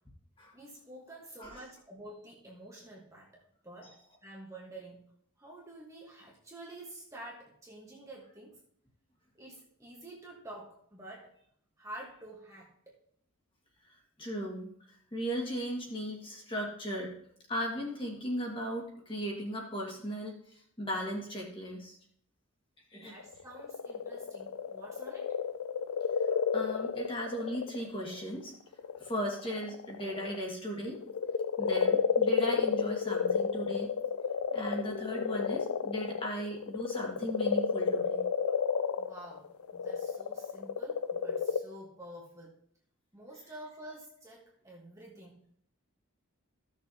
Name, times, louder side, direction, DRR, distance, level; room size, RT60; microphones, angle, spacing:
voice 1, 0.5-5.1 5.4-8.6 9.3-11.4 11.8-12.9 22.9-25.4 39.0-42.6 43.1-45.5, right 1 dB, 15° right, -3 dB, 1.3 m, -49 dB
voice 2, 13.9-17.1 17.5-20.4 20.8-22.0 22.9-23.1 26.5-28.5 29.0-31.0 31.6-33.9 34.5-38.2, equal, 25° left, -2 dB, 1.8 m, -37 dB
sound 1, 23.2-28.2 28.7-30.5 30.9-41.6, left 6 dB, 85° left, 0.4 m, -31 dB
14.5 x 6.5 x 2.8 m, 0.68 s
head